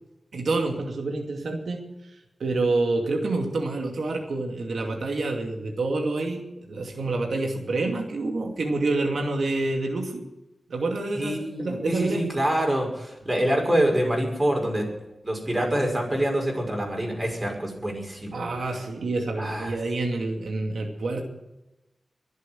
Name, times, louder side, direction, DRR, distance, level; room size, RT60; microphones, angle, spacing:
voice 1, 0.3-1.8 2.1-10.2 10.7-12.3 18.3-21.2, right 2 dB, 85° right, 2 dB, 2.5 m, -27 dB
voice 2, 11.2-14.9 15.2-18.5 19.4-19.7, right 1 dB, 20° right, 1 dB, 6.1 m, -26 dB
22.5 x 8.2 x 7.7 m, 0.97 s
wide cardioid pair, 90°, 0 cm